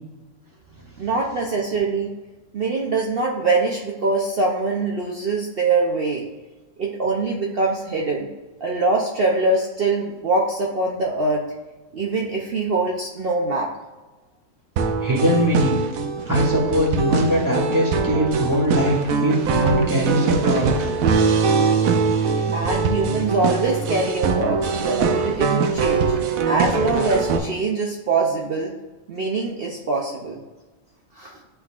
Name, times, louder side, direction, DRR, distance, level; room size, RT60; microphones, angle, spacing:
voice 1, 1.0-2.1 2.5-6.2 6.8-8.3 8.6-11.4 11.9-13.7 22.5-26.1 26.5-28.7 29.1-30.4 31.2-31.4, right 3 dB, 55° right, -1 dB, 0.8 m, -23 dB
sound 1, 14.8-27.4, right 5 dB, 85° right, 1.1 m, -22 dB
voice 2, 15.0-15.8 16.3-20.9 21.2-21.4, equal, 15° right, -3 dB, 1.6 m, -21 dB
10.5 x 3.9 x 2.4 m, 1.2 s
omnidirectional pair, 1.4 m